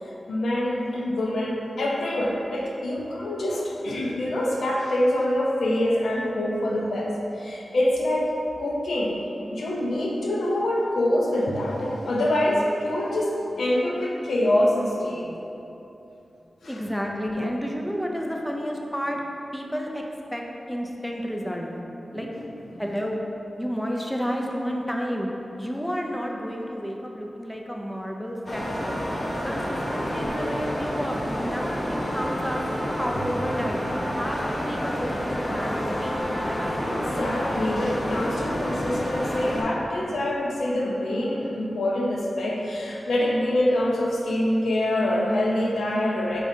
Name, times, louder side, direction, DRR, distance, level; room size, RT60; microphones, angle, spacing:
voice 1, 0.3-8.3 8.6-9.2 9.5-15.3 16.6-16.8 22.1-22.5 22.7-22.8 36.9-46.4, left 1 dB, 90° left, -2 dB, 0.5 m, -25 dB
voice 2, 16.6-19.2 19.5-20.0 20.3-21.7 22.1-22.3 22.8-23.2 23.6-25.3 25.6-28.9 29.4-36.3, equal, ahead, 0 dB, 0.4 m, -31 dB
sound 1, 28.5-39.6, equal, 35° left, 0.7 m, -29 dB
5.0 x 3.6 x 2.7 m, 2.9 s
wide cardioid pair, 90°, 0 cm